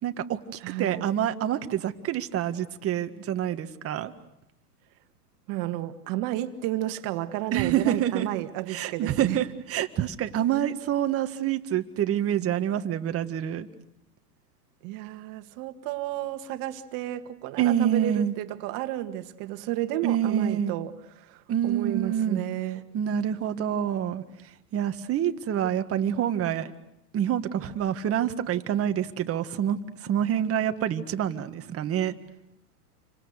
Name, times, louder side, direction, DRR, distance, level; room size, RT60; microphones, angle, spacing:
voice 1, 0.0-4.1 7.5-8.3 8.7-13.7 17.6-18.3 20.0-20.8 21.5-22.4 22.9-24.2 24.7-26.7 27.1-32.2, right 10 dB, 30° right, 8 dB, 1.8 m, -27 dB
voice 2, 0.6-1.1 5.5-9.4 14.8-22.9, right 14 dB, 45° right, 9 dB, 2.0 m, -32 dB
29.5 x 25.5 x 6.7 m, 0.85 s
hypercardioid pair, 115°, 48 cm